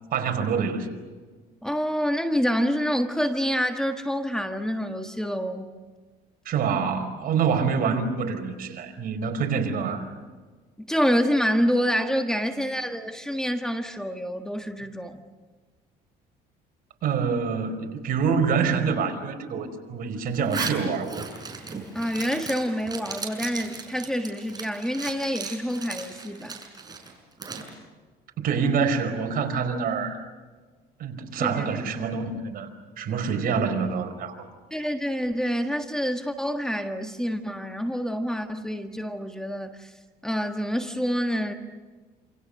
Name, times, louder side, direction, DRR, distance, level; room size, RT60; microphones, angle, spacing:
voice 1, 0.1-0.9 6.4-10.1 17.0-21.2 28.4-30.2 31.0-32.7 33.0-34.4, right 6 dB, 60° right, 4.9 m, -26 dB
voice 2, 1.6-5.7 10.8-15.2 21.9-26.6 31.4-31.8 34.7-39.9 40.2-41.5, equal, 5° left, 1.6 m, -27 dB
Zipper (clothing), 20.3-27.7, right 4 dB, 25° right, 6.3 m, -37 dB
28.5 x 28.0 x 6.6 m
cardioid pair, 110°, 17 cm